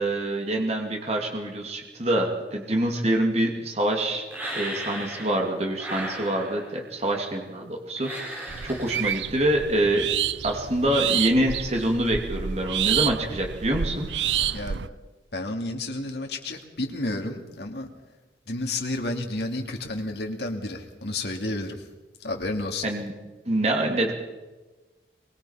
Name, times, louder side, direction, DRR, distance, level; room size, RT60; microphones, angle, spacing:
voice 1, 0.0-4.2 4.5-10.1 10.4-14.1 22.8-23.1 23.4-24.1, right 1 dB, 35° right, 1 dB, 2.7 m, -25 dB
sound 1, 4.3-5.5 5.8-6.8 8.0-9.2, right 1 dB, 10° right, 5.7 m, -35 dB
sound 2, 8.5-14.9, right 9 dB, 90° right, 0.6 m, -29 dB
voice 2, 14.5-14.9 15.3-17.9 18.5-21.9 22.2-22.9, left 2 dB, 70° left, 3 dB, 2.7 m, -31 dB
23.0 x 22.0 x 5.8 m, 1.2 s
head